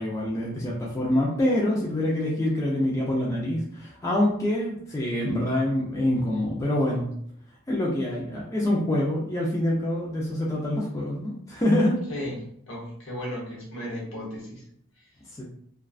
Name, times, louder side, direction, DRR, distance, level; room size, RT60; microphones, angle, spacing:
voice 1, 0.0-7.1 7.7-12.0 15.3-15.4, left 1 dB, 15° left, -5 dB, 0.3 m, -25 dB
voice 2, 12.1-14.7 15.0-15.1, equal, 65° left, -3 dB, 0.9 m, -35 dB
2.3 x 2.2 x 2.3 m, 0.67 s
head